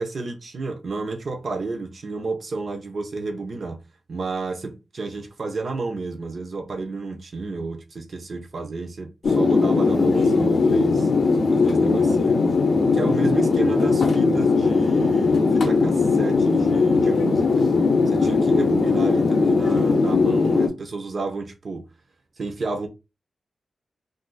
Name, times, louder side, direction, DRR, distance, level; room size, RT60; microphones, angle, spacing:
voice 1, 0.0-3.8 4.1-11.1 11.5-12.4 12.9-17.7 18.1-21.9 22.4-22.9, right 3 dB, 55° right, 0.7 m, -31 dB
sound 1, 9.2-20.7, left 4 dB, 65° left, 0.5 m, -19 dB
2.5 x 2.4 x 3.8 m
wide cardioid pair, 140°, 0 cm